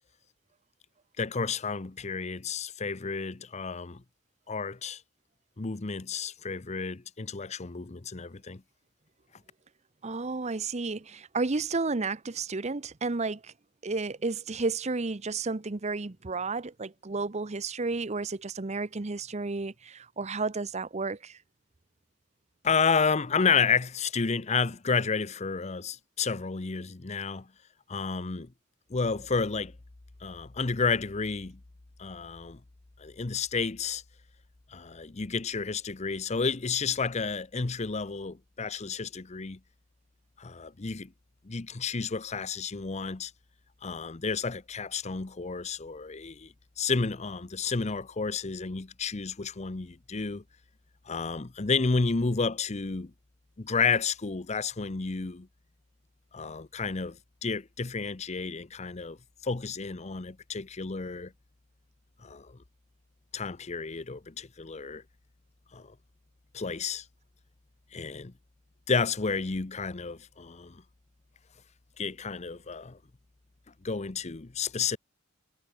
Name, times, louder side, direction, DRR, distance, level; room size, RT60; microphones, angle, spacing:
voice 1, 1.2-4.0 4.5-5.0 5.6-8.6 22.6-27.5 27.9-28.5 28.9-29.7 30.2-31.6 32.0-32.6 33.0-34.0 34.7-39.6 40.4-41.1 41.4-43.3 43.8-50.4 51.1-53.1 53.6-55.5 56.3-59.2 59.4-61.3 62.2-62.6 63.3-65.0 65.7-65.9 66.5-67.0 67.9-68.3 68.9-70.8 72.0-73.0 73.8-75.0, left 5 dB, 35° left, 0.7 m, -31 dB
voice 2, 10.0-13.5 13.8-21.4, right 3 dB, 35° right, 0.8 m, -32 dB
head